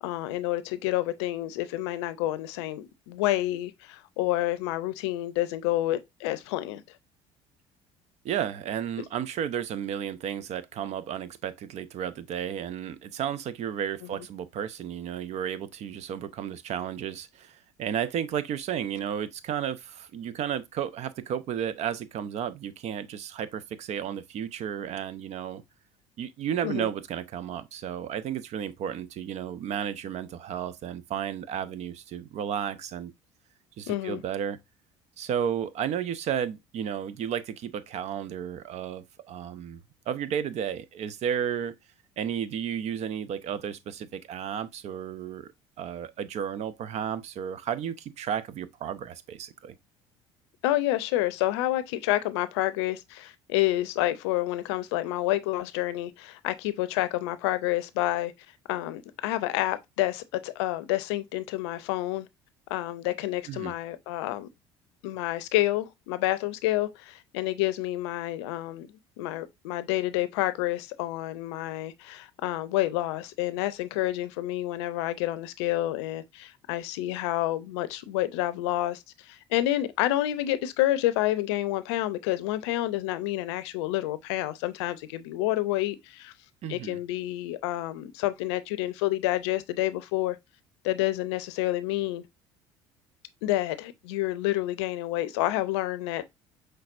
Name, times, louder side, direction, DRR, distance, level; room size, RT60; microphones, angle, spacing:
voice 1, 0.0-6.8 26.6-26.9 33.9-34.2 50.6-58.3 58.7-62.3 62.7-64.5 65.0-68.9 69.2-86.3 86.7-90.4 90.8-92.2 93.4-96.3, left 15 dB, 75° left, 0.5 m, -29 dB
voice 2, 8.2-25.6 26.2-33.1 33.8-34.6 35.2-39.8 40.1-41.7 42.2-45.5 45.8-49.7 63.5-63.7 86.6-87.0, right 9 dB, 50° right, 0.6 m, -33 dB
5.8 x 3.3 x 2.5 m
hypercardioid pair, 65°, 14 cm